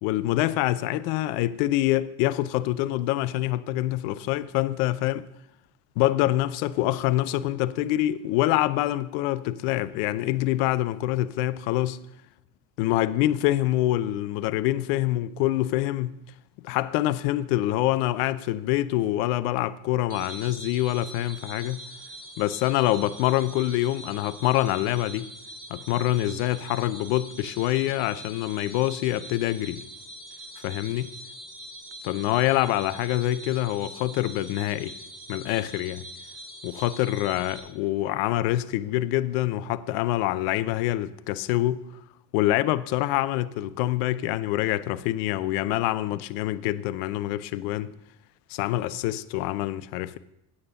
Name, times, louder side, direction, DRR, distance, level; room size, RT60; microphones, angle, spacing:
voice 1, 0.0-5.3 6.0-12.0 12.8-16.2 16.6-21.8 22.4-25.3 25.7-29.9 30.6-31.1 32.0-35.0 35.3-36.1 36.6-41.8 42.3-47.9 48.5-50.2, left 15 dB, 75° left, 0.7 m, -25 dB
sound 1, 20.1-37.6, right 1 dB, 30° right, 3.7 m, -43 dB
9.6 x 8.6 x 6.4 m
hypercardioid pair, 70°, 48 cm